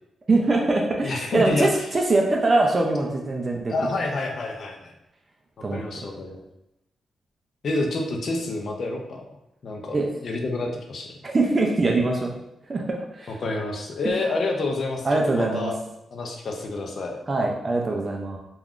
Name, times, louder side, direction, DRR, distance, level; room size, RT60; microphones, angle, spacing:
voice 1, 0.3-3.7 5.6-5.8 9.9-10.1 11.2-12.3 12.7-13.3 14.0-14.1 15.0-15.7 17.3-18.4, right 2 dB, 25° right, 0 dB, 0.3 m, -23 dB
voice 2, 1.0-1.8 3.7-4.9 5.7-6.4 7.6-9.3 9.6-11.2 13.3-15.8 16.1-17.2, left 2 dB, 50° left, 2 dB, 0.4 m, -28 dB
3.4 x 2.3 x 2.4 m, 0.88 s
wide cardioid pair, 150°, 0 cm